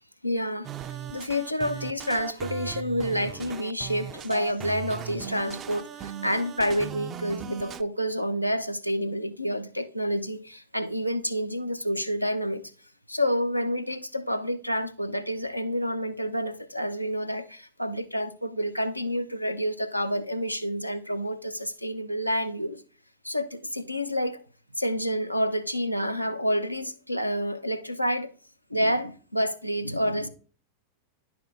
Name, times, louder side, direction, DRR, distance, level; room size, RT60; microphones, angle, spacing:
voice 1, 0.2-12.7 13.1-22.8 23.2-24.4 24.8-28.3 28.7-30.3, equal, 90° left, 0.6 m, -29 dB
sound 1, 0.6-7.8, right 9 dB, 30° right, 0.4 m, -38 dB
10.0 x 6.0 x 2.5 m
figure-of-eight pair, 90°, 0 cm